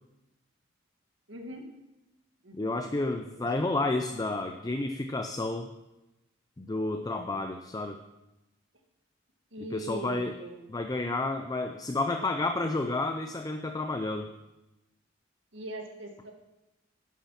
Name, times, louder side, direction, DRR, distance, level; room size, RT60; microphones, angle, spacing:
voice 1, 1.3-1.6 2.4-2.8 3.3-3.5 3.8-3.9 9.5-10.7 15.5-16.3, right 1 dB, 70° right, 3 dB, 1.9 m, -41 dB
voice 2, 2.6-5.7 6.6-8.0 9.7-10.3 10.7-14.3, left 2 dB, 20° left, 6 dB, 0.5 m, -30 dB
11.5 x 7.3 x 5.7 m, 0.97 s
head